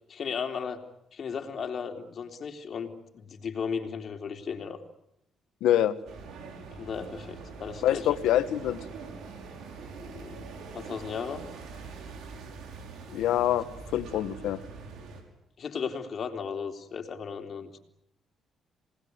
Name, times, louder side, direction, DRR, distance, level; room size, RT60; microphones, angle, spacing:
voice 1, 0.1-0.8 1.1-4.8 6.6-8.2 9.9-10.5 10.7-11.5 15.6-17.8, left 6 dB, 55° left, 4 dB, 3.6 m, -36 dB
voice 2, 5.6-6.0 7.8-8.8 13.1-14.6, left 12 dB, 85° left, 11 dB, 1.7 m, -25 dB
sound 1, 6.1-15.2, right 4 dB, 75° right, 6.2 m, -43 dB
27.5 x 20.0 x 9.6 m, 0.82 s
cardioid pair, 90°, 0 cm